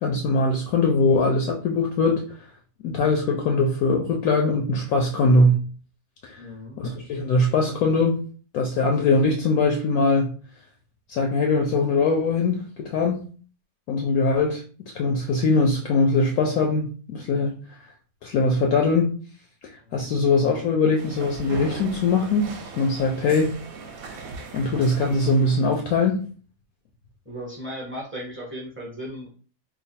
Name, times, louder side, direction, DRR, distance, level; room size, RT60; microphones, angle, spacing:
voice 1, 0.0-2.2 2.8-5.6 6.2-6.4 6.8-8.2 8.5-10.3 11.1-13.2 13.9-14.6 14.9-17.6 18.2-19.1 19.9-23.5 24.5-26.2, left 3 dB, 70° left, 0.9 m, -21 dB
voice 2, 6.3-6.8 19.8-20.2 27.2-29.3, equal, 10° right, 0.7 m, -36 dB
sound 1, 21.0-25.9, right 4 dB, 65° right, 1.0 m, -39 dB
3.0 x 2.2 x 4.1 m
omnidirectional pair, 1.8 m